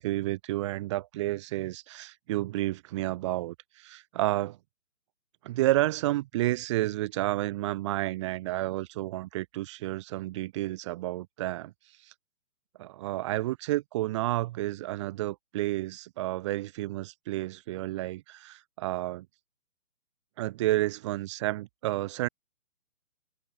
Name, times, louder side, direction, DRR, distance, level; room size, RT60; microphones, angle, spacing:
voice 1, 0.0-4.6 5.4-11.7 12.8-19.3 20.4-22.3, right 16 dB, 20° right, 6.2 m, -31 dB
hypercardioid pair, 175°, 45 cm